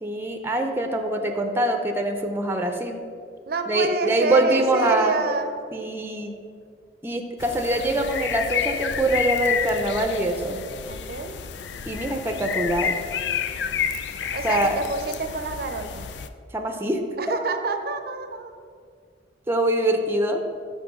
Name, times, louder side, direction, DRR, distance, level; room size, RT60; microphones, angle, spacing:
voice 1, 0.0-3.0 3.7-5.2 5.7-6.3 7.0-10.6 11.9-13.0 14.4-14.8 16.5-17.0 19.5-20.4, right 1 dB, 15° right, 4 dB, 0.6 m, -24 dB
voice 2, 3.5-5.5 10.9-11.4 14.2-16.1 17.2-18.5, right 3 dB, 60° right, 7 dB, 0.6 m, -28 dB
sound 1, 7.4-16.3, left 7 dB, 80° left, 0.4 m, -30 dB
6.1 x 5.9 x 6.1 m, 2.2 s
head